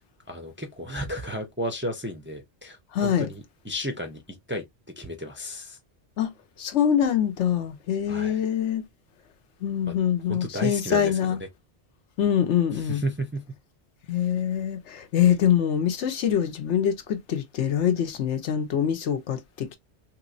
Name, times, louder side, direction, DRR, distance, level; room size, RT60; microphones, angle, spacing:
voice 1, 0.3-4.2 4.5-4.6 5.0-5.8 8.1-8.4 9.8-9.9 10.3-11.5 12.7-13.4, equal, 15° right, 0.4 m, -33 dB
voice 2, 2.9-3.3 6.2-6.3 6.6-8.8 9.6-11.4 12.2-13.0 14.1-19.8, left 9 dB, 80° left, 1.0 m, -24 dB
3.1 x 3.0 x 2.5 m
omnidirectional pair, 1.2 m